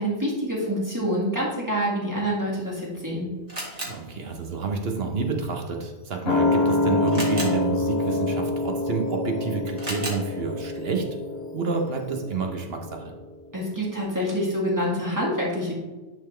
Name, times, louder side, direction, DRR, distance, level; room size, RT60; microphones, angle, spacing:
voice 1, 0.0-3.3 13.5-15.8, equal, 15° right, -5 dB, 1.9 m, -26 dB
Camera, 2.5-12.4, right 1 dB, 35° right, 1.8 m, -40 dB
voice 2, 3.8-11.1 11.5-13.1, right 4 dB, 60° right, 3 dB, 1.1 m, -29 dB
sound 1, 6.3-13.3 13.6-13.7, left 2 dB, 65° left, 1.0 m, -26 dB
10.5 x 4.0 x 3.3 m, 1.3 s
omnidirectional pair, 1.2 m